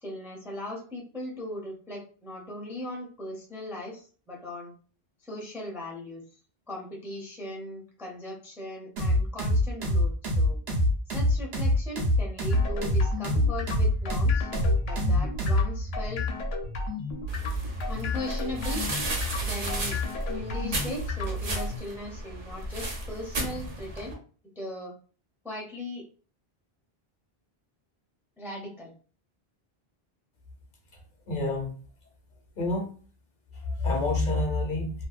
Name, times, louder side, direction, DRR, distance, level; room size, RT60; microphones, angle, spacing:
voice 1, 0.0-4.7 5.2-6.2 6.7-10.6 11.1-14.5 14.9-16.3 17.9-18.9 19.4-19.9 20.3-24.2 24.6-24.9 25.4-26.0 28.4-28.9, left 1 dB, 5° right, -2 dB, 0.5 m, -38 dB
sound 1, 9.0-15.7, left 1 dB, 85° right, 1.0 m, -24 dB
sound 2, 12.5-21.8, left 2 dB, 90° left, 0.9 m, -32 dB
sound 3, 17.3-24.1, right 1 dB, 55° right, 0.9 m, -35 dB
voice 2, 31.3-31.7 32.6-32.9 33.6-34.9, left 2 dB, 60° left, 1 dB, 0.8 m, -27 dB
2.6 x 2.2 x 2.4 m, 0.40 s
omnidirectional pair, 1.0 m